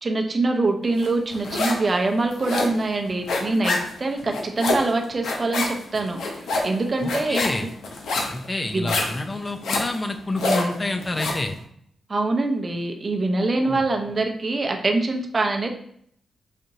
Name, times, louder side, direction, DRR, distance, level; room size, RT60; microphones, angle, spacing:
voice 1, 0.0-7.7 8.7-8.9 12.1-15.8, right 2 dB, 35° right, 3 dB, 0.6 m, -24 dB
sound 1, 1.0-1.9 2.2-11.5, left 2 dB, 85° left, 0.7 m, -27 dB
voice 2, 7.0-7.6 8.3-11.6 13.6-13.8, left 2 dB, 25° left, 6 dB, 0.5 m, -28 dB
5.0 x 2.8 x 2.7 m, 0.65 s
cardioid pair, 110°, 0 cm